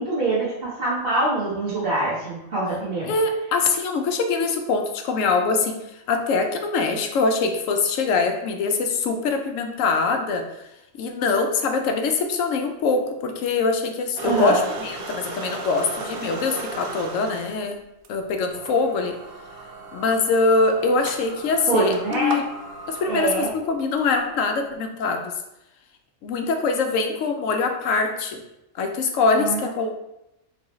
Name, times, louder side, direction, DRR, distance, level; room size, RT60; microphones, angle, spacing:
voice 1, 0.0-3.1 14.2-14.6 21.7-22.4 23.1-23.5 29.4-29.7, right 2 dB, 45° right, -10 dB, 1.4 m, -24 dB
voice 2, 3.1-10.5 11.0-17.8 18.1-19.2 19.9-22.5 22.9-25.3 26.2-28.4 28.8-30.0, left 4 dB, 75° left, 5 dB, 1.0 m, -23 dB
sound 1, 14.2-17.6 18.0-18.1 18.5-24.0, right 3 dB, 65° right, 0.6 m, -36 dB
4.6 x 3.1 x 3.0 m, 0.88 s
omnidirectional pair, 1.4 m